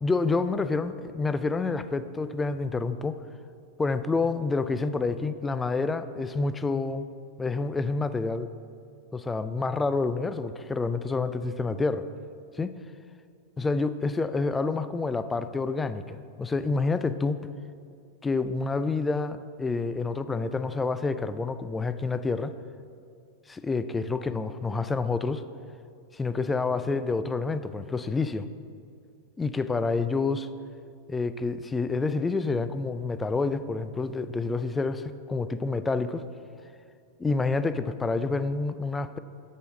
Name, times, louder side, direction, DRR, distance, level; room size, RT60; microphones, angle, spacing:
voice 1, 0.0-3.2 3.8-7.1 7.4-8.5 9.1-12.1 12.6-12.7 13.6-17.4 18.2-22.5 23.5-25.4 26.1-28.5 29.4-30.5 31.1-36.2 37.2-39.2, left 3 dB, 15° left, 12 dB, 0.3 m, -28 dB
7.0 x 4.7 x 6.1 m, 2.3 s
figure-of-eight pair, 90°, 0 cm